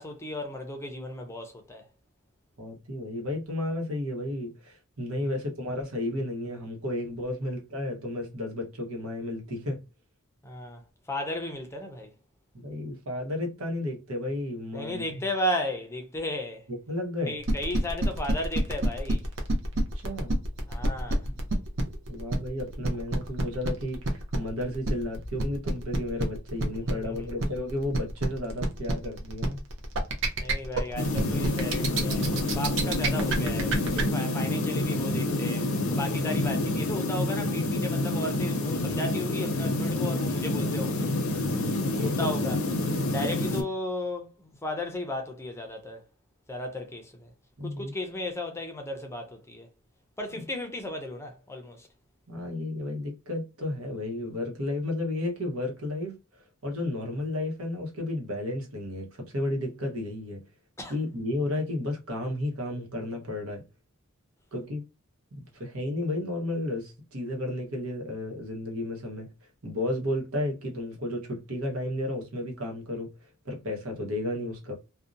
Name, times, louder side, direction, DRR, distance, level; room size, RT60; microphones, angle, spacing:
voice 1, 0.0-1.9 5.2-5.3 7.4-7.5 10.4-12.1 14.7-16.7 17.3-19.3 20.7-21.4 26.8-27.3 30.4-41.1 42.0-42.6 43.1-46.0 46.5-47.3 47.6-49.7 50.2-51.9 60.8-60.9, left 1 dB, 15° left, 0.5 m, -35 dB
voice 2, 2.6-9.8 12.5-15.0 16.9-17.4 19.7-20.4 21.3-21.4 22.1-29.6 41.5-42.3 47.6-47.9 52.3-56.2 56.6-60.4 60.9-63.6 64.5-64.8 65.3-69.3 69.6-73.1 73.4-74.7, left 1 dB, 85° right, 1.0 m, -33 dB
sound 1, 17.4-34.0, right 2 dB, 65° right, 0.6 m, -28 dB
sound 2, 31.0-43.6, left 1 dB, 75° left, 0.6 m, -28 dB
2.7 x 2.1 x 2.5 m
head